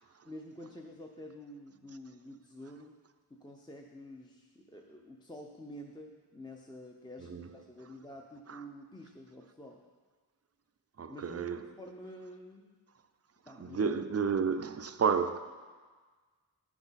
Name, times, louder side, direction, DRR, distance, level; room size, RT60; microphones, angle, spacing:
voice 1, 0.2-2.9 3.3-9.8 11.1-12.8 13.5-14.0, left 1 dB, 10° left, 0.6 m, -49 dB
voice 2, 11.0-11.6 13.6-15.4, right 6 dB, 40° right, 0.4 m, -31 dB
12.0 x 5.9 x 4.0 m
wide cardioid pair, 110°, 41 cm